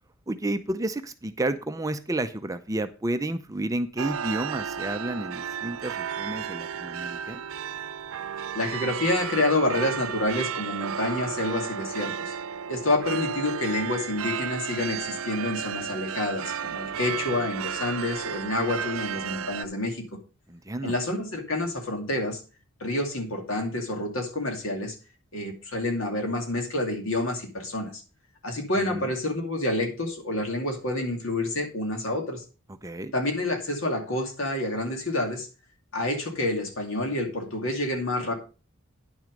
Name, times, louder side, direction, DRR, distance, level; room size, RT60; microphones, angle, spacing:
voice 1, 0.3-7.4 17.1-17.4 20.5-21.0 28.9-29.1 32.8-33.2, right 1 dB, 15° right, 9 dB, 0.5 m, -31 dB
sound 1, 4.0-19.6, right 8 dB, 80° right, 0.5 m, -33 dB
voice 2, 8.5-12.4 12.7-20.1 20.8-22.4 22.8-25.0 25.3-28.0 28.4-32.4 33.1-35.5 35.9-38.3, left 2 dB, 70° left, 3 dB, 2.5 m, -28 dB
10.0 x 6.3 x 5.2 m, 0.34 s
head